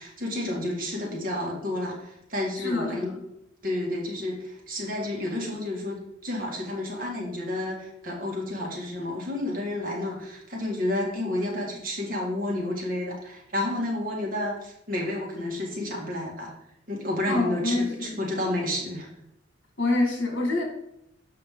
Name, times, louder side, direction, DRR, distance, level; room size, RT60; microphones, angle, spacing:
voice 1, 0.0-3.1 3.6-16.5 16.9-19.1, left 1 dB, 50° right, -2 dB, 2.0 m, -30 dB
voice 2, 2.6-3.1 17.3-18.2 19.8-20.6, left 2 dB, 70° left, 2 dB, 1.8 m, -26 dB
7.1 x 5.6 x 3.8 m, 0.78 s
head